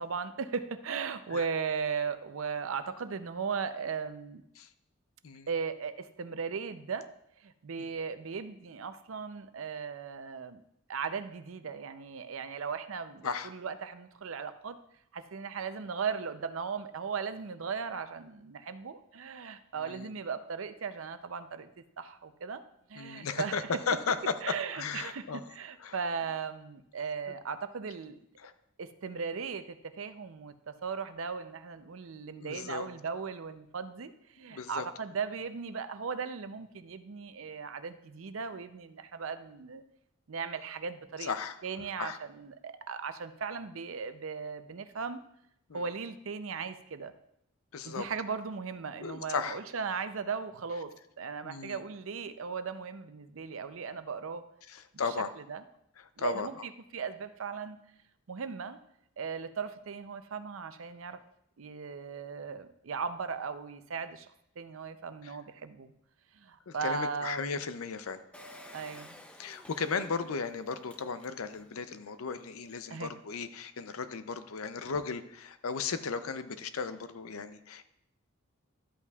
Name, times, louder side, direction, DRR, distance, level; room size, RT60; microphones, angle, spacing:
voice 1, 0.0-4.4 5.5-7.1 7.4-10.6 10.9-14.8 15.1-21.7 22.0-22.6 22.9-23.7 24.4-28.3 28.8-39.8 40.3-41.3 41.6-45.2 45.7-47.1 47.8-54.4 54.9-55.1 55.5-55.6 56.2-57.8 58.3-58.8 59.2-61.2 61.6-64.3 64.6-65.9 66.3-67.6 68.7-69.2 72.9-73.1, right 5 dB, 70° right, 11 dB, 0.5 m, -37 dB
voice 2, 23.0-25.5 25.8-26.0 28.4-28.5 32.4-32.9 34.5-34.9 41.2-41.6 42.0-42.2 45.7-45.8 47.7-48.1 49.0-49.6 51.4-51.8 54.7-55.3 56.0-56.5 65.2-65.3 66.7-68.2 69.4-77.8, left 5 dB, 85° left, 11 dB, 0.6 m, -35 dB
Engine, 68.3-71.8 72.3-72.4 72.6-72.7, left 1 dB, 5° left, 0.5 m, -52 dB
12.5 x 8.2 x 2.4 m, 0.77 s
head